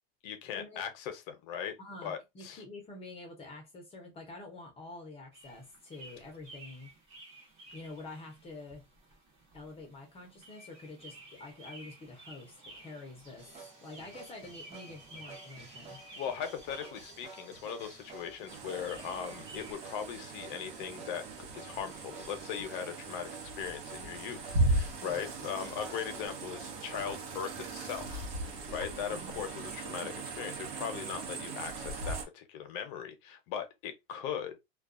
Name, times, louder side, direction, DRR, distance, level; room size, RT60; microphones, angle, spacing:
voice 1, 0.2-1.7 2.0-2.6 16.2-23.3 23.6-34.6, left 8 dB, 55° left, 0.7 m, -39 dB
voice 2, 1.8-6.9 7.7-8.9 9.5-13.5 13.8-16.0 25.0-25.2 29.1-29.4, left 2 dB, 20° left, 0.6 m, -47 dB
sound 1, 5.3-19.7, right 2 dB, 40° right, 1.1 m, -54 dB
sound 2, 13.4-26.3, right 4 dB, 20° right, 0.8 m, -52 dB
sound 3, 18.5-32.2, right 2 dB, 85° right, 0.9 m, -37 dB
2.3 x 2.3 x 2.4 m
supercardioid pair, 145°, 30 cm